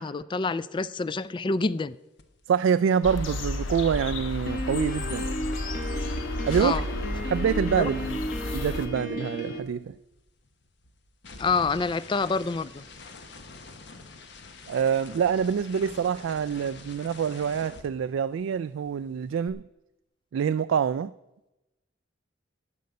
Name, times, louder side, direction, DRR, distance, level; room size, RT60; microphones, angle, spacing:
voice 1, 0.0-2.0 6.6-6.8 7.8-7.9 11.4-12.8, left 4 dB, 25° left, 0.3 m, -27 dB
sound 1, 2.2-2.4 2.7-7.1 7.3-18.6 18.8-19.5, left 3 dB, 65° left, 1.2 m, -48 dB
voice 2, 2.5-5.3 6.5-6.8 7.3-8.2 8.5-9.9 14.7-19.6 20.3-21.1, right 7 dB, 85° right, 0.3 m, -26 dB
sound 2, 3.0-8.9, left 1 dB, 85° left, 1.1 m, -32 dB
Piano, 4.5-9.6, equal, 45° left, 1.8 m, -34 dB
13.0 x 5.3 x 9.3 m
head